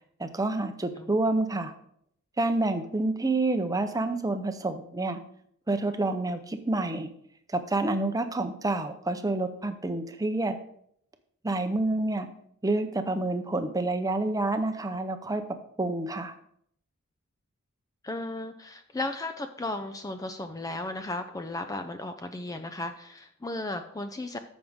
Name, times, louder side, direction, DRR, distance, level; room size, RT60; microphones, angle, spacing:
voice 1, 0.2-1.7 2.4-5.2 5.7-7.1 7.5-10.6 11.4-12.3 12.6-15.4 15.8-16.3, right 2 dB, 15° right, 8 dB, 0.7 m, -28 dB
voice 2, 18.0-24.4, left 2 dB, 15° left, 8 dB, 0.5 m, -35 dB
14.0 x 6.1 x 3.6 m, 0.69 s
head